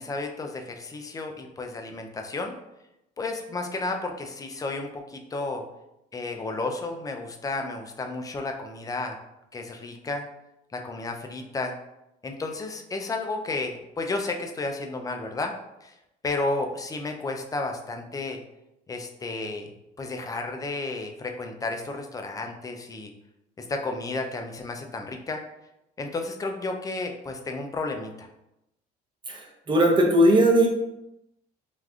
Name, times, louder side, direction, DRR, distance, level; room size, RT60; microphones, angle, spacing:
voice 1, 0.0-2.5 3.2-5.6 6.1-9.2 9.5-10.3 10.7-11.7 12.2-15.5 15.8-15.9 16.2-18.4 18.9-19.7 20.0-23.1 23.6-25.4 26.0-28.3, left 3 dB, 20° left, 4 dB, 0.4 m, -32 dB
voice 2, 29.7-30.7, right 1 dB, 30° right, 1 dB, 0.6 m, -18 dB
3.4 x 2.5 x 2.3 m, 0.89 s
cardioid pair, 110°, 17 cm